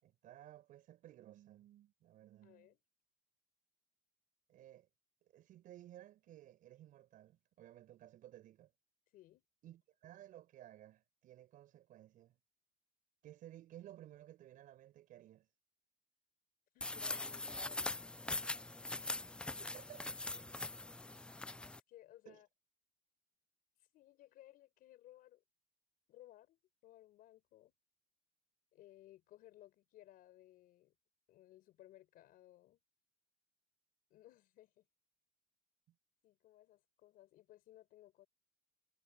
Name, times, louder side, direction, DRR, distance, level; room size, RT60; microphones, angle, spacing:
voice 1, 0.0-2.7 4.5-4.9 5.2-8.7 9.6-12.4 13.2-15.5 19.5-20.1 22.2-22.4, right 13 dB, 45° right, 6.5 m, -57 dB
voice 2, 2.4-2.8 9.1-9.4 16.7-18.4 21.9-22.5 23.9-25.4 26.1-27.7 28.7-30.9 31.3-32.8 34.1-34.9 36.2-38.3, left 14 dB, 50° left, 5.1 m, -61 dB
sound 1, 16.8-21.8, left 2 dB, 5° left, 0.4 m, -42 dB
cardioid pair, 155°, 20 cm